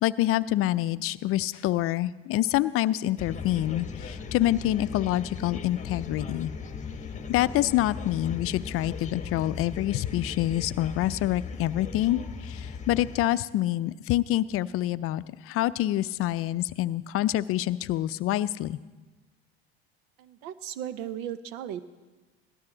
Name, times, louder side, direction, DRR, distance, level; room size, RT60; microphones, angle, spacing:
voice 1, 0.0-6.5 7.3-18.8, left 14 dB, 50° left, 16 dB, 0.5 m, -26 dB
sound 1, 3.2-13.3, left 5 dB, 25° left, 1.1 m, -38 dB
voice 2, 20.2-21.8, right 10 dB, 70° right, 14 dB, 0.8 m, -36 dB
17.5 x 13.0 x 3.9 m, 1.2 s
hypercardioid pair, 85°, 30 cm